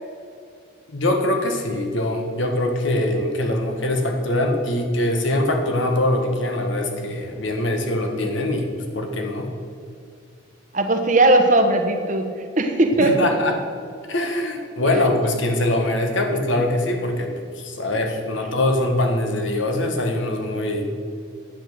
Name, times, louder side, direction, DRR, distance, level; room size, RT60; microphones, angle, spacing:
voice 1, 0.9-9.5 13.0-13.5 14.1-17.3 17.6-20.9, left 1 dB, 70° left, 3 dB, 1.5 m, -23 dB
voice 2, 10.7-12.3 12.6-13.2, right 2 dB, 40° right, 5 dB, 1.1 m, -17 dB
10.0 x 8.6 x 6.7 m, 2.4 s
head